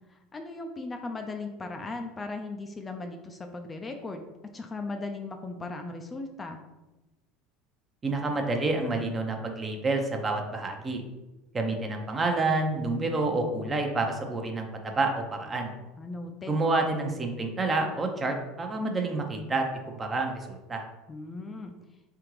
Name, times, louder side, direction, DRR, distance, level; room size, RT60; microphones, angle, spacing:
voice 1, 0.1-4.2 4.5-6.6 16.0-16.6 21.1-21.7, left 3 dB, 25° left, 5 dB, 0.4 m, -37 dB
voice 2, 8.0-11.0 11.5-15.7 16.5-20.8, right 3 dB, 25° right, 3 dB, 0.7 m, -28 dB
3.6 x 3.5 x 3.1 m, 1.1 s
hypercardioid pair, 85°, 0 cm